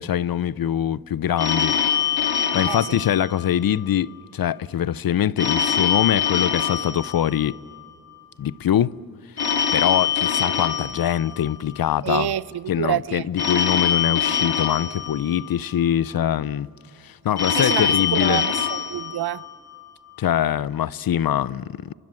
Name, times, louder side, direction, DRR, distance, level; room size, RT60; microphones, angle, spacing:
voice 1, 0.0-1.8 2.5-7.5 8.4-8.9 9.7-12.3 12.7-16.7 17.0-18.4 20.2-21.9, left 10 dB, 65° left, 0.6 m, -23 dB
Telephone, 1.4-3.9 5.4-7.9 9.4-11.9 13.4-15.9 17.4-19.9, left 8 dB, 85° left, 3.0 m, -24 dB
voice 2, 2.7-3.0 12.0-13.2 17.5-19.4, right 11 dB, 80° right, 0.6 m, -27 dB
29.0 x 27.0 x 7.5 m
wide cardioid pair, 155°, 38 cm